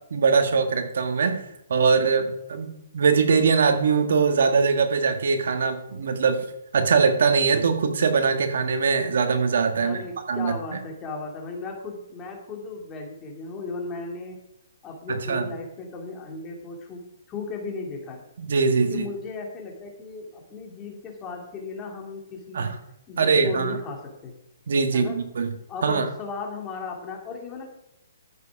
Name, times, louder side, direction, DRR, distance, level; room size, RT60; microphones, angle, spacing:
voice 1, 0.1-1.4 1.7-6.4 6.7-10.0 10.3-10.8 15.1-15.5 18.4-19.1 22.5-22.8 23.2-23.8 24.7-25.5 25.8-26.1, right 5 dB, 70° right, 7 dB, 1.6 m, -22 dB
voice 2, 9.8-14.3 14.8-17.0 17.3-18.2 18.9-22.7 23.1-24.0 24.2-24.3 24.9-25.2 25.7-27.7, left 4 dB, 20° left, 0 dB, 2.8 m, -36 dB
13.5 x 7.5 x 4.9 m, 0.83 s
hypercardioid pair, 150°, 0 cm